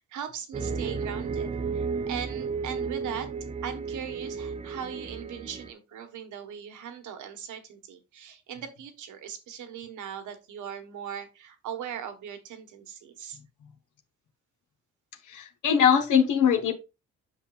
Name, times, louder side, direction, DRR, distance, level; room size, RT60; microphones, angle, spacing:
voice 1, 0.0-3.3 3.6-13.4, right 8 dB, 80° right, 1.4 m, -39 dB
sound 1, 0.5-5.7, right 5 dB, 20° right, 0.4 m, -33 dB
voice 2, 15.3-16.7, left 8 dB, 80° left, 1.3 m, -22 dB
8.1 x 5.8 x 2.4 m
cardioid pair, 90°, 30 cm